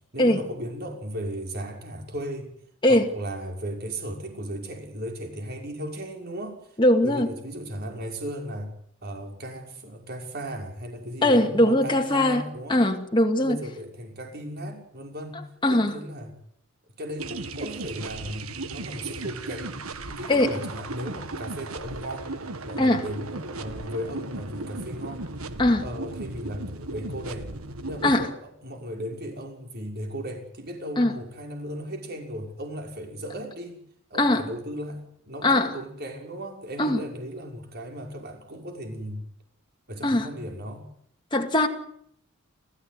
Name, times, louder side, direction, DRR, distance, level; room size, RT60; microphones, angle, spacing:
voice 1, 0.1-2.5 2.9-8.7 9.0-12.8 13.3-16.4 16.9-19.8 20.1-22.3 22.6-25.3 25.8-27.5 27.9-33.8 34.1-39.2 39.9-40.8, equal, 45° right, 6.0 m, -36 dB
voice 2, 6.8-7.3 11.2-12.4 12.7-13.6 15.6-15.9 20.3-20.6 22.8-23.0 25.6-25.8 28.0-28.3 31.0-31.1 34.2-34.4 35.4-35.7 36.8-37.0 40.0-40.3 41.3-41.7, left 1 dB, 20° left, 2.2 m, -20 dB
sound 1, 17.2-28.3, right 2 dB, 80° right, 1.8 m, -36 dB
29.5 x 15.0 x 9.6 m
head